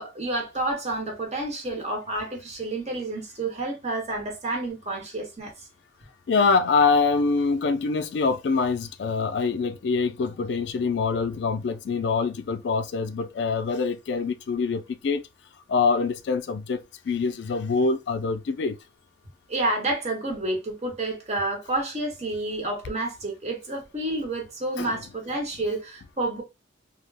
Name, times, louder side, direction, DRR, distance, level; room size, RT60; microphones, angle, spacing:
voice 1, 0.0-5.5 19.5-26.4, right 2 dB, 40° right, 1.0 m, -29 dB
voice 2, 6.3-15.2 15.7-18.8 24.8-25.0, left 4 dB, 75° left, 0.3 m, -25 dB
2.3 x 2.1 x 3.2 m
head